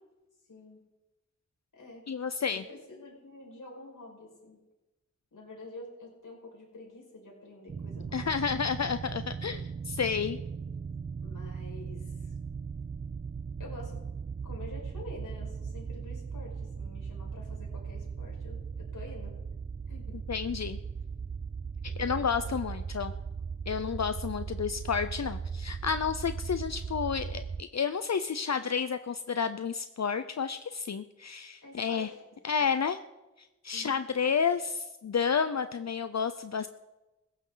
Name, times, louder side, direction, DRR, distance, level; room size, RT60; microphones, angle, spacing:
voice 1, 0.5-0.8 1.7-2.1 2.5-4.6 5.3-8.6 11.2-12.4 13.1-13.2 13.6-14.1 14.4-19.4 19.9-20.2 21.8-22.6 23.7-24.0 31.6-32.2 32.5-32.8 33.7-34.0, left 2 dB, 85° left, -2 dB, 5.4 m, -48 dB
voice 2, 2.1-2.6 8.1-10.4 20.3-20.8 22.0-23.1 23.7-32.1 32.4-33.0 33.6-36.7, left 6 dB, 60° left, 11 dB, 0.7 m, -31 dB
sound 1, 7.7-27.6, right 5 dB, 30° right, 0.4 m, -38 dB
18.5 x 15.5 x 4.0 m, 1.0 s
cardioid pair, 50°, 31 cm